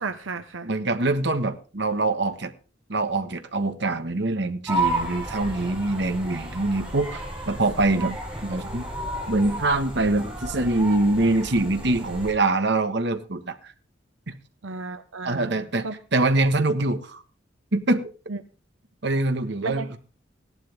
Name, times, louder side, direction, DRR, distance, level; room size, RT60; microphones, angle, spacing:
voice 1, 0.0-0.7 14.6-15.6 15.8-16.0 18.3-18.4 19.6-20.0, right 4 dB, 85° right, 8 dB, 0.9 m, -33 dB
voice 2, 0.6-2.5 2.9-8.1 8.4-8.8 9.3-13.7 14.3-14.4 15.2-17.2 17.7-18.1 19.0-20.0, right 2 dB, 60° right, 8 dB, 1.4 m, -24 dB
sound 1, 4.7-12.3, right 2 dB, 5° right, 6.2 m, -32 dB
16.0 x 11.5 x 3.6 m, 0.35 s
head